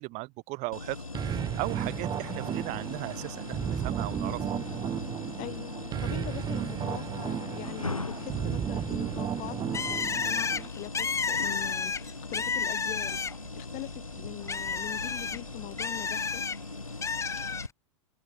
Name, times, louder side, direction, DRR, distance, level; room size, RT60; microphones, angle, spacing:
voice 1, 0.0-4.6, right 24 dB, 45° right, 6.6 m, -37 dB
sound 1, 0.7-17.7, left 3 dB, 90° left, 3.4 m, -40 dB
sound 2, 1.1-10.7, right 9 dB, 25° right, 1.4 m, -34 dB
voice 2, 5.4-5.7 6.0-16.4, left 23 dB, 45° left, 5.6 m, -42 dB
Bird, 9.7-13.6 13.9-16.6 17.0-17.7, left 5 dB, 15° left, 6.6 m, -31 dB
figure-of-eight pair, 95°, 17 cm